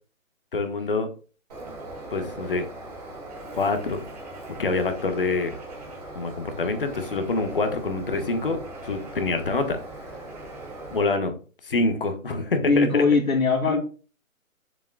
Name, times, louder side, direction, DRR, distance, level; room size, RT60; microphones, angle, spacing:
voice 1, 0.5-1.1 2.1-2.7 3.5-4.0 4.5-5.6 6.1-9.8 10.9-11.4 11.6-13.0 13.7-13.8, left 3 dB, 40° left, 6 dB, 1.3 m, -26 dB
Bird, 1.5-11.0, right 2 dB, 30° right, 2.5 m, -40 dB
voice 2, 12.6-13.9, left 4 dB, 80° left, 0 dB, 2.5 m, -20 dB
9.5 x 6.9 x 2.3 m, 0.36 s
hypercardioid pair, 170°, 41 cm